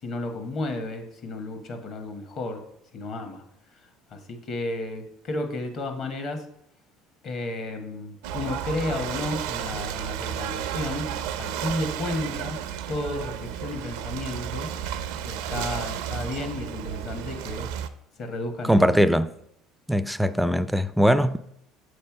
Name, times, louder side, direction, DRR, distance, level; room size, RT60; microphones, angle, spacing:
voice 1, 0.0-2.6 2.9-3.4 4.1-6.4 7.2-12.6 12.9-14.7 15.2-17.7 18.2-18.9, left 2 dB, 50° left, 1.3 m, -32 dB
Ocean / Boat Water vehicle, 8.2-17.9, right 9 dB, 85° right, 0.5 m, -32 dB
voice 2, 18.7-19.3 19.9-21.4, equal, ahead, 0.3 m, -20 dB
7.2 x 3.3 x 5.8 m
supercardioid pair, 105°, 0 cm